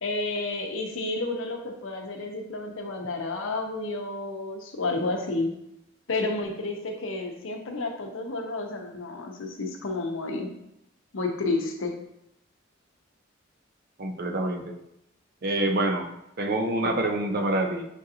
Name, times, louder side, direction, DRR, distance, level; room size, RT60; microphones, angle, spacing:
voice 1, 0.0-5.5 6.1-10.5 11.1-12.0, left 2 dB, 85° left, 2 dB, 0.7 m, -31 dB
voice 2, 14.0-14.8 15.4-16.1 16.4-17.9, right 1 dB, 50° right, 4 dB, 0.5 m, -26 dB
6.2 x 2.5 x 2.8 m, 0.81 s
head